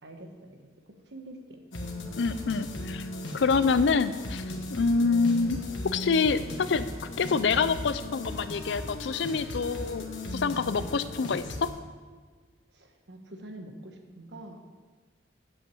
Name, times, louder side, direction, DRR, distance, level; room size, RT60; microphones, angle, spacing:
voice 1, 0.0-0.6 1.1-1.6 4.8-5.0 12.7-14.6, right 1 dB, 65° right, 4 dB, 1.2 m, -45 dB
sound 1, 1.7-11.7, left 2 dB, 85° left, 1.3 m, -37 dB
voice 2, 2.2-3.1 3.3-4.4 4.7-5.6 5.8-6.9 7.2-10.0 10.3-11.7, left 4 dB, 65° left, 13 dB, 0.5 m, -26 dB
7.9 x 5.8 x 7.7 m, 1.5 s
head